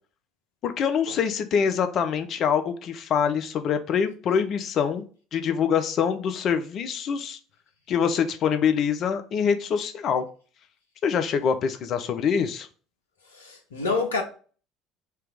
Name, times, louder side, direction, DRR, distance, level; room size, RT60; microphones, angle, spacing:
voice 1, 0.6-5.0 5.3-7.4 7.9-10.2 11.0-12.7, left 7 dB, 45° left, 0.5 m, -25 dB
voice 2, 13.3-14.2, left 4 dB, 80° left, 0.9 m, -27 dB
3.4 x 2.9 x 4.7 m
figure-of-eight pair, 60°, 0 cm